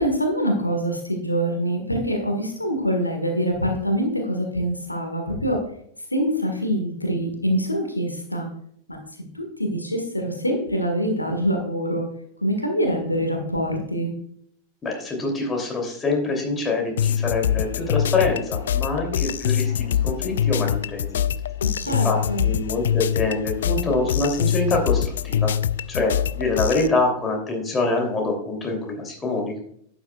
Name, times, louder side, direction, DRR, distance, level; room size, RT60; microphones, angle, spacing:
voice 1, 0.0-5.6 6.1-8.5 9.3-12.1 12.4-14.1 21.6-22.5, equal, 85° left, 3 dB, 1.6 m, -25 dB
voice 2, 14.8-21.2 21.8-25.5 25.9-29.6, left 3 dB, 20° left, 1 dB, 2.9 m, -25 dB
sound 1, 17.0-26.9, left 9 dB, 65° left, 0.3 m, -24 dB
11.5 x 8.9 x 2.3 m, 0.66 s
figure-of-eight pair, 90°, 0 cm